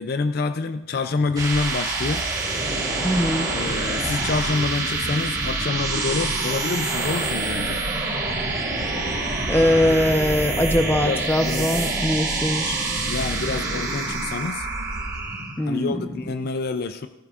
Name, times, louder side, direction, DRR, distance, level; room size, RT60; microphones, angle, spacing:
voice 1, 0.0-2.3 3.5-7.8 11.0-11.7 13.1-14.7 15.7-17.1, left 4 dB, 50° left, 10 dB, 0.4 m, -27 dB
sound 1, 1.1-15.6, right 3 dB, 20° right, 3.8 m, -26 dB
voice 2, 3.0-3.5 9.5-12.9 15.6-16.0, left 1 dB, 10° left, 6 dB, 0.7 m, -22 dB
15.0 x 14.5 x 2.5 m, 1.0 s
head